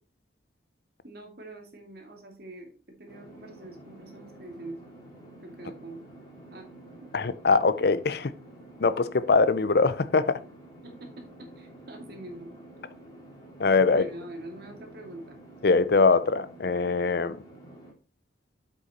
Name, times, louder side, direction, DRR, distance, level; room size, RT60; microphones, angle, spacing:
voice 1, 1.0-4.8 5.4-6.0 6.5-6.7 10.8-12.5 13.9-15.4, right 2 dB, 55° right, 2.4 m, -44 dB
sound 1, 3.1-17.9, right 1 dB, 20° left, 2.5 m, -49 dB
voice 2, 7.1-8.3 8.8-10.4 13.6-14.1 15.6-17.4, left 4 dB, 55° left, 0.6 m, -22 dB
7.8 x 6.3 x 4.2 m
head